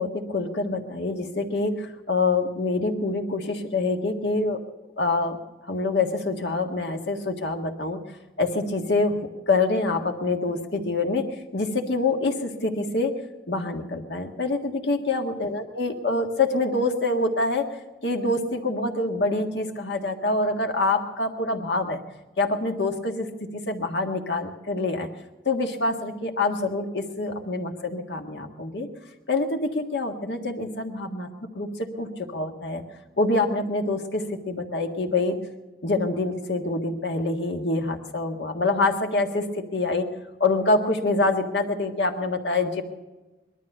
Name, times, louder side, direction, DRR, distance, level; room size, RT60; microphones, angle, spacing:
voice 1, 0.0-4.6 5.0-5.4 5.7-8.0 8.4-11.3 11.5-13.1 13.5-17.7 18.0-22.0 22.4-25.1 25.5-28.9 29.3-31.3 31.5-32.8 33.2-35.4 35.8-40.1 40.4-42.8, left 2 dB, 80° left, 4 dB, 1.7 m, -26 dB
20.0 x 13.0 x 5.5 m, 1.1 s
head